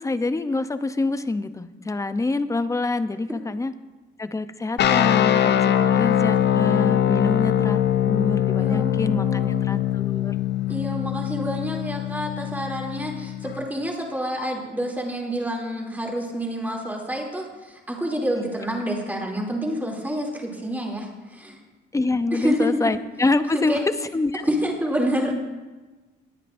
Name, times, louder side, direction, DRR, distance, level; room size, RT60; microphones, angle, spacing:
voice 1, 0.0-3.7 4.2-10.3 21.9-23.8 24.1-24.4, left 3 dB, 15° left, 11 dB, 0.6 m, -26 dB
sound 1, 4.8-13.7, left 10 dB, 60° left, 0.6 m, -22 dB
voice 2, 8.6-9.6 10.7-21.6 22.3-22.8 23.7-23.8 24.4-25.4, equal, 10° right, -1 dB, 2.8 m, -28 dB
20.0 x 9.0 x 2.6 m, 1.2 s
cardioid pair, 90°, 20 cm